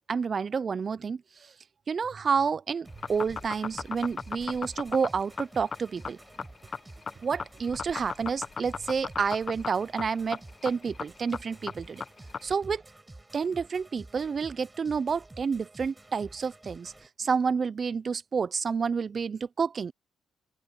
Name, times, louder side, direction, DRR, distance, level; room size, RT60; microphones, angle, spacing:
voice 1, 0.1-1.2 1.9-6.2 7.2-12.0 12.4-12.8 13.3-16.9 17.2-19.9, right 5 dB, 40° right, 0.5 m, -29 dB
sound 1, 2.8-17.1, right 2 dB, 15° right, 5.1 m, -50 dB
sound 2, 2.9-12.5, left 5 dB, 40° left, 1.1 m, -36 dB
open air
cardioid pair, 90°, 0 cm